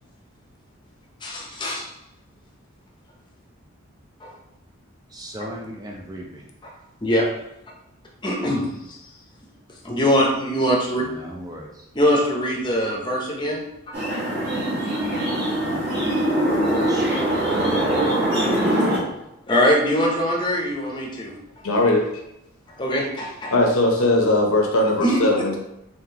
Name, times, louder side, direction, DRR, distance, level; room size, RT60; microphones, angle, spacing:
voice 1, 1.2-1.9 4.2-4.3 7.0-7.3 8.2-9.0 9.8-11.0 11.9-14.0 16.5-16.9 19.0-19.1 19.5-21.3 22.8-23.5 25.0-25.2, equal, 20° left, -2 dB, 0.7 m, -23 dB
voice 2, 5.1-6.5 8.4-8.7 10.9-11.8 16.8-17.3, equal, 15° right, 0 dB, 0.4 m, -37 dB
sound 1, 13.9-19.0, right 1 dB, 45° right, 1.4 m, -22 dB
voice 3, 21.6-22.1 23.5-25.6, left 2 dB, 80° left, 1 dB, 0.8 m, -19 dB
3.7 x 3.4 x 2.8 m, 0.85 s
head